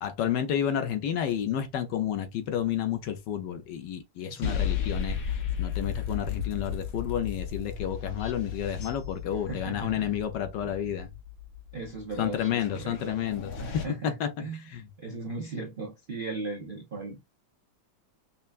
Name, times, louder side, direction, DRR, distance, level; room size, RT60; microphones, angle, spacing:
voice 1, 0.0-11.1 12.2-14.3 14.7-14.9, left 9 dB, 75° left, 1.2 m, -31 dB
voice 2, 4.3-4.6 9.5-10.1 10.6-10.7 11.7-13.2 13.6-14.7 15.0-17.2, right 3 dB, 50° right, 0.6 m, -37 dB
sound 1, 4.4-13.8, left 8 dB, 55° left, 1.2 m, -34 dB
5.5 x 2.1 x 2.4 m
omnidirectional pair, 2.1 m